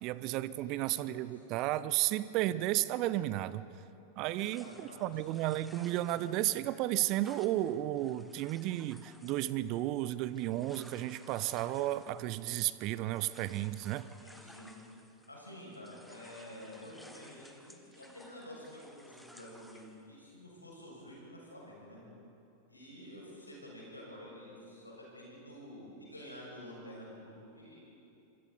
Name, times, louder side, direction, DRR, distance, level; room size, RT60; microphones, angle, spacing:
voice 1, 0.0-3.7 4.2-14.1, right 15 dB, 40° right, 16 dB, 0.6 m, -33 dB
voice 2, 0.6-1.4 4.4-5.1 14.2-14.7 15.3-22.0 22.7-27.8, left 1 dB, 85° left, -4 dB, 6.4 m, -50 dB
sound 1, 4.3-15.4 15.7-20.0, equal, ahead, 1.3 m, -58 dB
26.5 x 24.5 x 4.1 m, 2.8 s
figure-of-eight pair, 90°, 0 cm